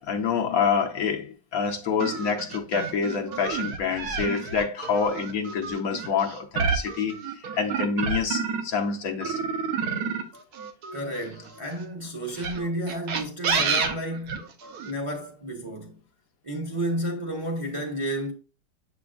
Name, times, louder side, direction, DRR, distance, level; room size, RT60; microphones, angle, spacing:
voice 1, 0.0-9.5, left 6 dB, 65° left, 1.0 m, -27 dB
sound 1, 2.0-8.8 9.2-11.6 12.3-14.9, right 5 dB, 65° right, 1.3 m, -29 dB
voice 2, 10.9-14.5 14.8-16.0 16.4-18.3, equal, 25° right, 0.8 m, -31 dB
7.7 x 5.1 x 2.4 m
omnidirectional pair, 1.9 m